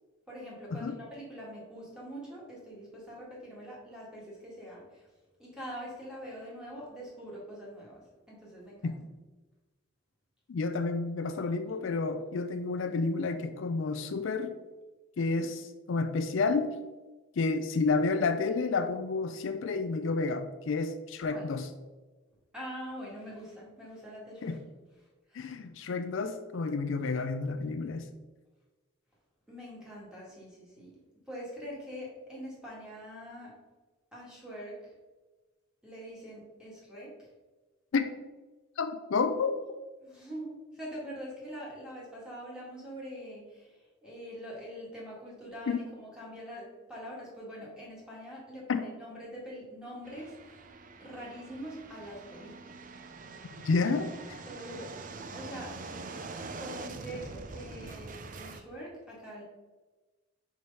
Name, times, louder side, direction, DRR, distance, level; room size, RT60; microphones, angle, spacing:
voice 1, 0.3-5.0 5.4-8.0 8.3-9.0 21.3-21.4 22.5-24.6 25.3-25.5 29.5-30.9 31.3-33.5 34.1-34.8 35.8-37.1 40.0-43.7 44.0-50.6 51.0-52.7 54.5-55.8 56.6-59.4, equal, 5° right, -6 dB, 1.9 m, -44 dB
voice 2, 10.5-14.5 15.2-16.7 17.4-21.7 24.4-24.6 25.3-28.1 37.9-38.1 38.8-39.5 45.7-45.8 48.7-48.8 53.5-54.4, left 4 dB, 65° left, 8 dB, 0.4 m, -30 dB
sound 1, 50.0-58.6, right 3 dB, 40° right, 0.4 m, -44 dB
4.7 x 4.7 x 5.3 m, 1.2 s
head